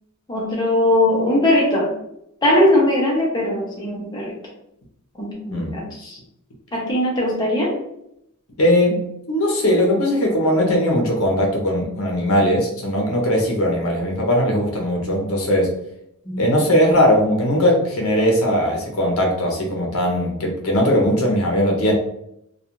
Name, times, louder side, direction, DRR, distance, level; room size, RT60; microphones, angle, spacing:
voice 1, 0.3-1.9 2.4-4.4 5.2-6.2 6.7-7.7 16.3-16.4, left 1 dB, 20° left, -4 dB, 0.6 m, -20 dB
voice 2, 8.6-15.7 16.4-21.9, equal, 65° left, 0 dB, 0.7 m, -19 dB
2.3 x 2.3 x 2.9 m, 0.77 s
head